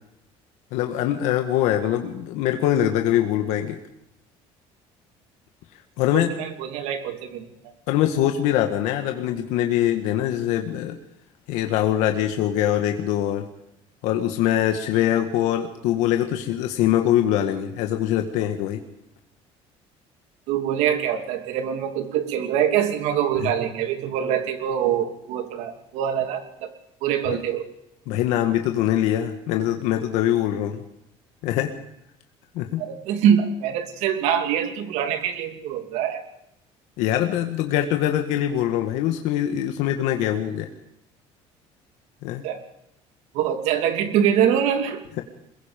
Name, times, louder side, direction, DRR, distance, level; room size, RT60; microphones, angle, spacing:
voice 1, 0.7-3.8 6.0-6.3 7.9-11.0 11.5-13.5 14.0-18.8 23.4-23.5 27.3-27.4 28.1-30.8 31.4-31.7 32.5-32.8 37.0-40.7 42.2-42.4, left 11 dB, 85° left, 5 dB, 1.8 m, -23 dB
voice 2, 6.1-7.5 20.5-26.7 27.0-27.7 32.8-36.2 42.4-42.6 43.3-45.0, right 9 dB, 75° right, 6 dB, 3.0 m, -24 dB
22.5 x 21.5 x 5.3 m, 0.81 s
cardioid pair, 170°, 12 cm